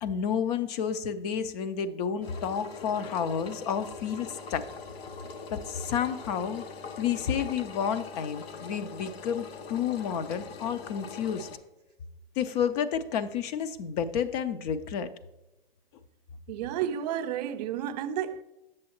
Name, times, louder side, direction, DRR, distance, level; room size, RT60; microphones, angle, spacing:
voice 1, 0.0-4.6 5.5-6.6 7.0-11.5 12.4-15.1, left 8 dB, 40° left, 0.5 m, -30 dB
Engine, 2.2-11.6, left 5 dB, 75° left, 0.9 m, -42 dB
voice 2, 16.5-18.4, right 10 dB, 40° right, 0.5 m, -31 dB
7.6 x 6.8 x 2.9 m
hypercardioid pair, 115°, 31 cm